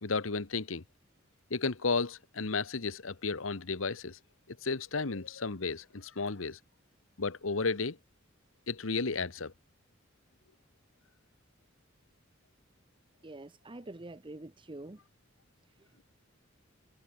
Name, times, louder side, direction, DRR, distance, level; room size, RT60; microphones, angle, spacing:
voice 1, 0.0-0.8 1.5-4.2 4.5-6.6 7.2-8.0 8.7-9.5, left 4 dB, 80° left, 1.3 m, -33 dB
voice 2, 13.2-15.0, right 2 dB, 25° right, 0.9 m, -45 dB
head